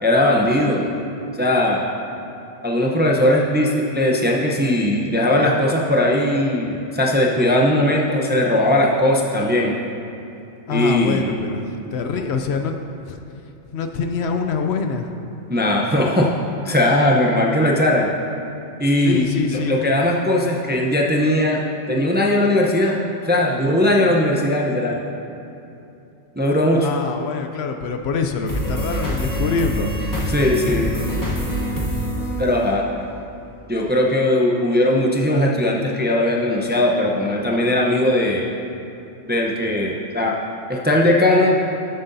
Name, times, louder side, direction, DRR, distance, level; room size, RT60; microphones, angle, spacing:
voice 1, 0.0-0.9 1.4-1.8 2.6-9.8 10.7-11.4 12.2-12.3 15.5-16.3 16.6-18.1 18.8-21.6 21.9-23.0 23.2-25.0 26.4-26.9 30.2-30.9 32.4-32.8 33.7-38.4 39.3-40.4 40.7-41.6, left 1 dB, 10° right, -2 dB, 0.5 m, -19 dB
voice 2, 10.7-11.6 11.9-12.7 13.7-15.0 19.0-19.8 26.8-29.9, left 5 dB, 70° left, 6 dB, 0.8 m, -24 dB
sound 1, 28.5-33.2, equal, 15° left, 1.2 m, -25 dB
13.5 x 7.6 x 2.7 m, 2.8 s
omnidirectional pair, 1.2 m